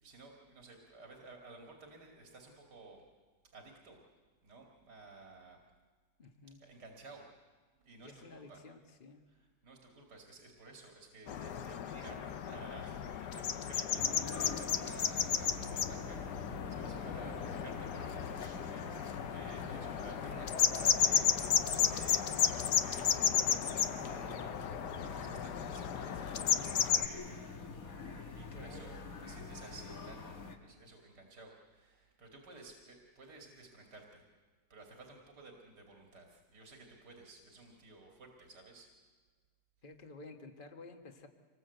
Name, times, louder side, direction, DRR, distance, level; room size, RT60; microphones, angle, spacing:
voice 1, 0.0-3.0 3.4-4.0 4.4-5.6 6.5-7.3 7.8-8.6 9.3-27.5 28.3-34.3 34.7-38.9, right 3 dB, 80° right, 1 dB, 2.9 m, -54 dB
voice 2, 6.2-6.6 8.0-9.2 17.1-17.3 17.6-17.7 28.5-28.9 29.2-29.3 39.8-41.3, left 3 dB, 30° left, 5 dB, 1.6 m, -52 dB
sound 1, 11.3-27.1, left 8 dB, 80° left, 1.5 m, -33 dB
sound 2, 13.9-30.6, left 4 dB, 55° left, 2.0 m, -45 dB
26.0 x 21.0 x 8.0 m, 1.5 s
omnidirectional pair, 1.8 m